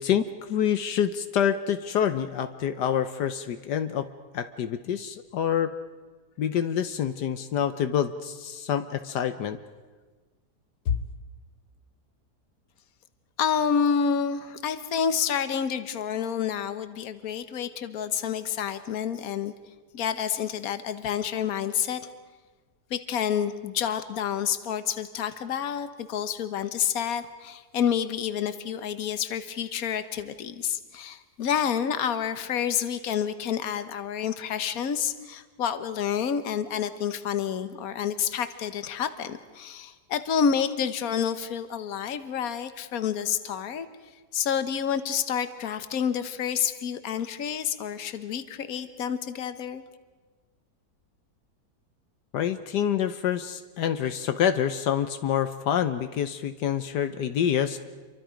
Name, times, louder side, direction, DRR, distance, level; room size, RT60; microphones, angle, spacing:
voice 1, 0.0-4.1 4.3-5.7 6.4-9.6 10.9-11.1 52.3-57.8, left 9 dB, 80° left, 9 dB, 1.5 m, -27 dB
voice 2, 13.4-19.5 19.9-22.1 22.9-43.9 44.3-49.8, left 8 dB, 60° left, 11 dB, 1.5 m, -29 dB
28.0 x 24.0 x 5.1 m, 1.3 s
omnidirectional pair, 1.8 m